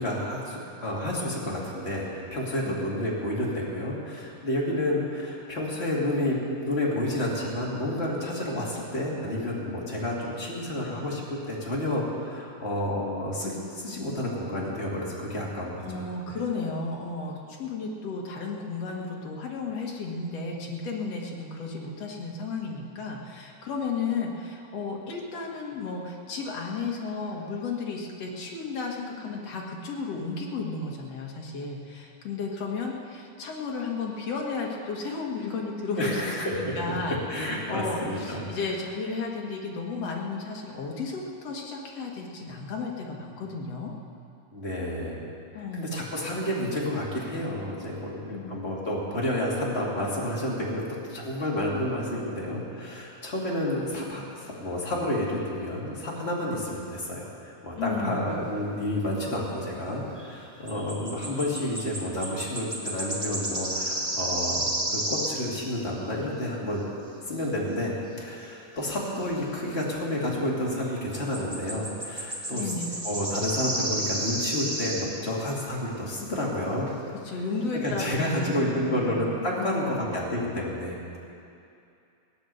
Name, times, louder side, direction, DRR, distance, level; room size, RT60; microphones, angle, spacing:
voice 1, 0.0-16.0 36.0-36.9 37.3-38.4 44.5-45.2 45.5-50.8 51.1-66.9 67.3-72.7 73.0-76.9 77.8-81.2, left 1 dB, 20° left, -4 dB, 2.9 m, -30 dB
voice 2, 15.7-37.2 37.7-43.9 45.5-46.0 48.2-48.5 57.7-58.3 72.5-72.9 77.2-79.3 79.6-80.0, left 4 dB, 55° left, -1 dB, 2.7 m, -33 dB
sound 1, 60.2-60.4 60.7-65.5 71.1-75.2 76.5-76.6 76.9-77.0, right 1 dB, 55° right, 0.3 m, -32 dB
17.5 x 9.8 x 7.9 m, 2.6 s
omnidirectional pair, 3.6 m